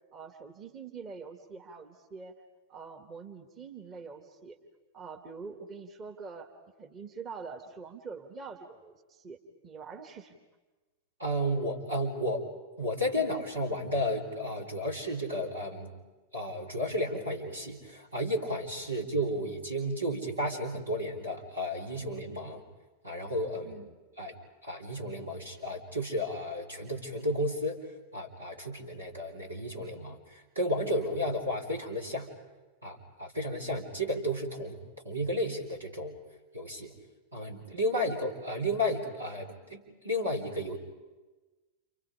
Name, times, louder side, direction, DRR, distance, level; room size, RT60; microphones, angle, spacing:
voice 1, 0.1-2.4 2.7-4.6 4.9-6.5 6.8-9.4 9.6-10.4 23.6-23.9, right 5 dB, 25° right, 3 dB, 2.3 m, -45 dB
voice 2, 11.2-12.4 12.8-15.9 16.3-22.6 23.0-23.8 24.2-24.3 24.6-32.3 32.8-34.8 35.0-36.2 36.5-36.9 37.3-40.8, equal, 80° right, 1 dB, 4.1 m, -33 dB
30.0 x 28.0 x 5.1 m, 1.2 s
figure-of-eight pair, 90°, 0 cm